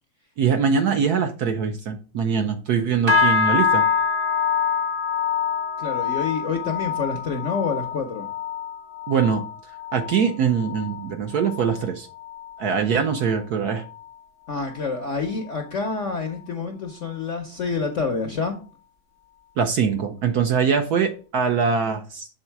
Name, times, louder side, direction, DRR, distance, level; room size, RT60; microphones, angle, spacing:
voice 1, 0.4-3.8 9.1-9.4 9.9-12.1 12.6-13.8 19.6-22.3, right 6 dB, 65° right, 5 dB, 1.0 m, -22 dB
sound 1, 3.1-12.6 12.9-13.4 13.8-14.1 14.6-14.7, left 6 dB, 40° right, 0.9 m, -25 dB
voice 2, 5.8-8.3 14.5-18.6, left 4 dB, 60° left, 4 dB, 0.8 m, -27 dB
7.2 x 3.9 x 4.4 m, 0.37 s
omnidirectional pair, 2.2 m